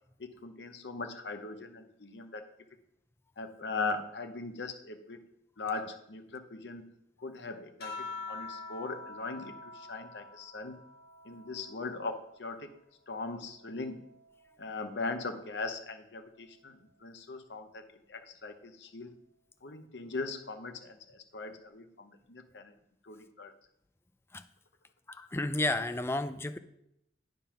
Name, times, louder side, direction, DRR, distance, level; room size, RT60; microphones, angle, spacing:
voice 1, 0.2-2.5 3.4-5.2 5.6-6.8 7.2-10.8 11.2-12.8 13.1-14.1 14.6-19.1 19.6-22.7 23.0-23.5, left 3 dB, 85° left, 7 dB, 0.9 m, -40 dB
sound 1, 7.8-12.6 13.1-14.8 16.0-16.5, left 3 dB, 60° left, 2.5 m, -47 dB
voice 2, 25.1-26.6, left 2 dB, 15° left, 10 dB, 0.4 m, -32 dB
8.8 x 5.3 x 5.8 m, 0.79 s
head